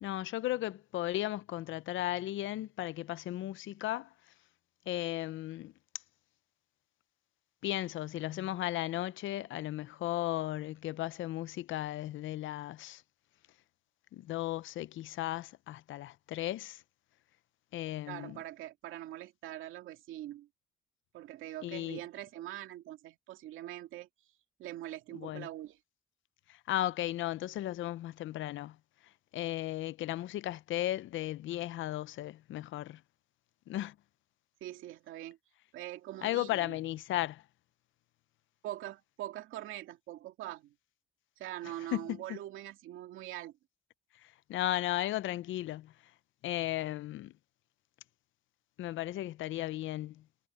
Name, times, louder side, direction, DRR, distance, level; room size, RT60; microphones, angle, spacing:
voice 1, 0.0-4.1 4.9-5.7 7.6-13.0 14.1-16.8 17.7-18.4 21.6-22.0 25.1-25.5 26.5-28.8 29.3-33.0 33.7-33.9 36.2-37.4 41.9-42.4 44.2-45.9 46.4-47.3 48.8-50.2, left 14 dB, 80° left, 0.6 m, -35 dB
voice 2, 18.1-20.5 21.1-24.1 24.6-25.8 34.6-35.4 35.7-36.8 38.6-40.7 41.4-43.6, right 14 dB, 90° right, 2.4 m, -43 dB
cardioid pair, 90°, 20 cm